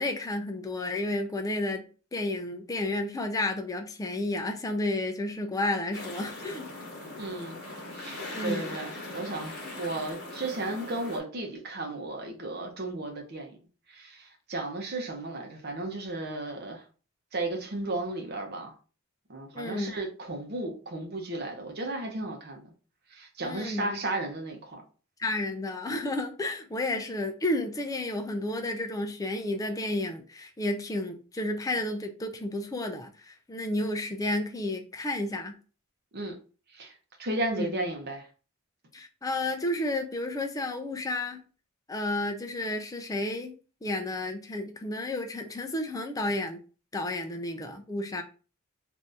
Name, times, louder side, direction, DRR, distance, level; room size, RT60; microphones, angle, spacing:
voice 1, 0.0-1.8 2.1-6.7 8.3-8.8 19.5-19.9 23.4-24.0 25.2-35.6 37.5-37.8 38.9-41.4 41.9-43.5 43.8-46.6 46.9-48.2, left 1 dB, 15° left, 0.4 m, -31 dB
sound 1, 5.9-11.2, left 2 dB, 50° left, 1.0 m, -40 dB
voice 2, 7.2-7.6 7.9-13.6 13.9-16.8 17.3-18.7 19.3-22.6 23.1-24.8 36.1-36.4 36.7-36.9 37.2-38.2, right 2 dB, 50° right, 0.8 m, -34 dB
2.7 x 2.6 x 3.4 m
head